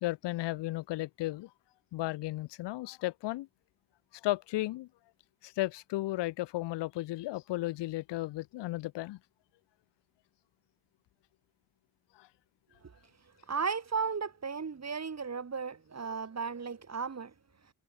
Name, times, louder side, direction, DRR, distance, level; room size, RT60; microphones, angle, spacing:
voice 1, 0.0-1.5 1.9-3.5 4.2-4.9 5.4-9.2 12.2-12.3, left 17 dB, 85° left, 1.0 m, -34 dB
voice 2, 13.5-17.3, right 5 dB, 40° right, 2.9 m, -35 dB
supercardioid pair, 55°, 41 cm